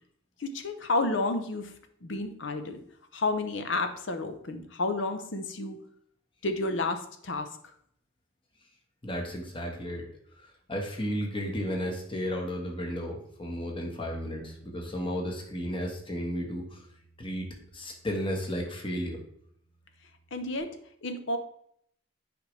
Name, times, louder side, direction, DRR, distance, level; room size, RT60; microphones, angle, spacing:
voice 1, 0.4-1.7 2.0-2.8 3.1-5.8 6.4-7.5 20.3-20.8 21.0-21.4, left 2 dB, 70° left, 8 dB, 0.8 m, -31 dB
voice 2, 9.0-10.1 10.4-16.9 17.2-17.5 17.7-19.2, equal, 25° left, 1 dB, 1.3 m, -33 dB
Bass guitar, 14.3-20.6, right 2 dB, 45° left, 3.0 m, -57 dB
7.9 x 5.2 x 3.3 m, 0.68 s
head